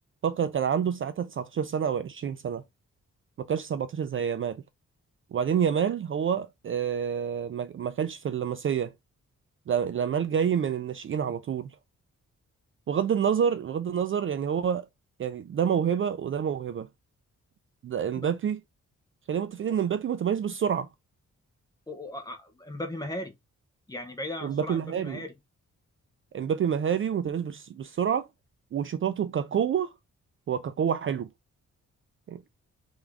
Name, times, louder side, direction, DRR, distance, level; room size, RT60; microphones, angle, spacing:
voice 1, 0.2-2.6 3.4-4.6 5.3-8.9 9.7-11.7 12.9-14.9 15.2-16.9 17.8-18.6 19.3-20.9 24.4-25.2 26.3-28.3 28.7-29.9 30.5-31.3 32.3-32.4, right 8 dB, 45° right, 0.4 m, -28 dB
voice 2, 21.9-23.3 23.9-25.3, left 1 dB, 15° left, 0.9 m, -37 dB
3.6 x 3.5 x 3.4 m
wide cardioid pair, 145°, 29 cm